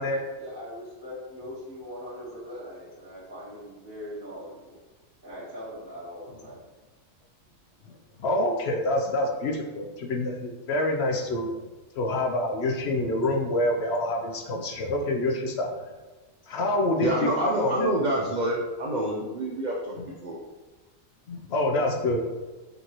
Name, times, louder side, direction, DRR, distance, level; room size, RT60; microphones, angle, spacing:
voice 1, 0.0-4.8 5.2-6.6 16.7-16.8, left 1 dB, 40° right, -8 dB, 1.7 m, -40 dB
voice 2, 8.2-11.5 12.0-15.7 16.5-17.9 21.3-22.2, left 1 dB, 65° left, 2 dB, 0.7 m, -26 dB
voice 3, 17.0-20.4, right 1 dB, 80° right, -1 dB, 0.4 m, -27 dB
5.2 x 2.9 x 2.9 m, 1.2 s
omnidirectional pair, 1.5 m